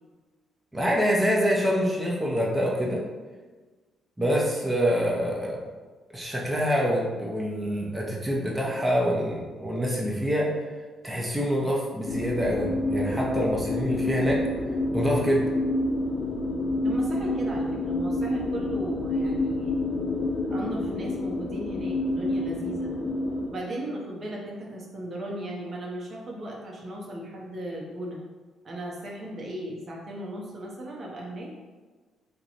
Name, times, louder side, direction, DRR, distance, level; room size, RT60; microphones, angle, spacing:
voice 1, 0.7-3.0 4.2-5.7 6.1-10.5 11.0-14.4 14.9-15.5, equal, 10° right, -3 dB, 0.7 m, -26 dB
sound 1, 12.1-23.5, left 1 dB, 55° left, 0.6 m, -28 dB
voice 2, 16.8-19.7 20.5-22.9 23.5-28.2 28.6-31.5, right 1 dB, 50° right, -2 dB, 0.7 m, -36 dB
2.9 x 2.2 x 4.0 m, 1.3 s
cardioid pair, 90°, 0 cm